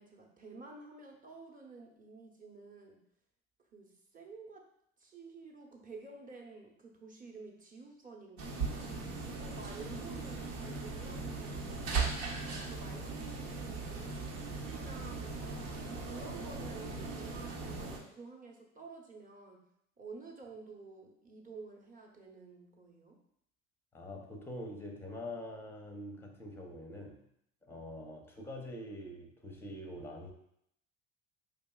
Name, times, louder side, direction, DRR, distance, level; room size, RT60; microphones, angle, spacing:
voice 1, 0.0-3.0 3.7-4.6 5.0-8.5 9.3-12.2 12.6-14.2 14.6-15.8 16.1-19.6 20.0-23.2 27.7-27.9, right 3 dB, 20° right, 1 dB, 0.8 m, -51 dB
sound 1, 8.4-18.0, right 4 dB, 70° right, 0.9 m, -38 dB
voice 2, 23.9-27.2 27.6-30.3, left 1 dB, 5° left, 2 dB, 0.7 m, -45 dB
5.0 x 2.8 x 2.3 m, 0.73 s
hypercardioid pair, 75°, 39 cm